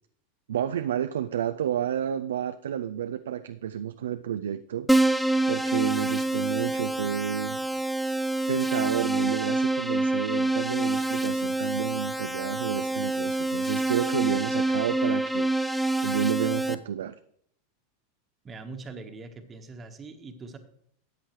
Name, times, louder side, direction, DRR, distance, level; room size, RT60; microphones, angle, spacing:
voice 1, 0.5-4.9 5.5-7.6 8.5-15.5 16.0-17.2, right 9 dB, 70° right, 10 dB, 0.3 m, -30 dB
Keyboard (musical), 4.9-16.7, right 2 dB, ahead, 0.6 m, -27 dB
voice 2, 18.4-20.6, right 3 dB, 25° right, 7 dB, 1.3 m, -42 dB
13.0 x 8.3 x 3.1 m, 0.68 s
figure-of-eight pair, 90°, 0 cm